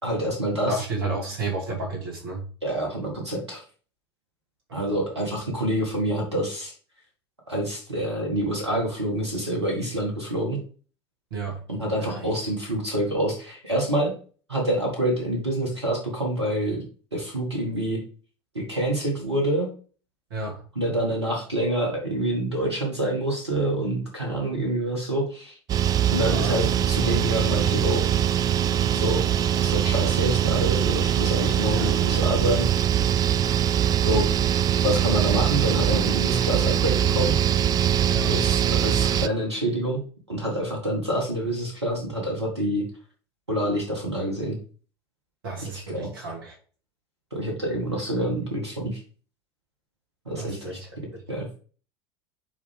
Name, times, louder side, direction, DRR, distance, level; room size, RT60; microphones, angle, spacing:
voice 1, 0.0-0.8 2.6-3.6 4.7-6.7 7.5-10.6 11.7-14.1 14.5-16.8 17.1-18.0 18.5-19.7 20.7-25.6 26.1-28.1 28.9-29.2 29.6-32.7 34.0-34.3 34.8-37.3 38.3-40.0 40.3-42.8 43.5-44.6 45.7-46.1 47.3-49.0 50.2-50.8 51.3-51.5, right 1 dB, 85° right, 0 dB, 1.6 m, -27 dB
voice 2, 0.7-2.4 4.7-5.0 11.3-11.6 11.9-12.3 20.3-20.6 26.2-26.6 31.7-32.0 38.1-38.3 45.4-46.5 50.4-50.9, right 3 dB, 60° right, -2 dB, 2.5 m, -32 dB
sound 1, 25.7-39.3, right 10 dB, 25° right, 0.3 m, -22 dB
9.1 x 3.4 x 3.4 m, 0.40 s
figure-of-eight pair, 75°, 14 cm